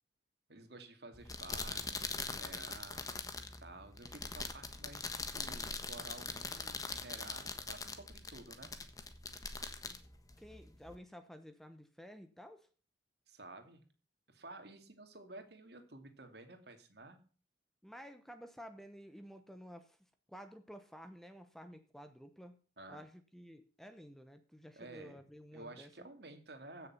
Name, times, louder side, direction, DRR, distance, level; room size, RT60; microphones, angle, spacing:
voice 1, 0.5-3.1 3.6-8.7 13.3-13.8 14.3-17.2 22.8-23.0 24.7-25.2 25.5-26.9, right 2 dB, 60° right, 6 dB, 2.5 m, -52 dB
sound 1, 1.1-11.0, left 4 dB, 20° left, 1.3 m, -42 dB
voice 2, 10.4-12.7 17.8-22.6 22.9-25.9, equal, ahead, 9 dB, 0.9 m, -53 dB
15.5 x 7.0 x 5.8 m, 0.40 s
head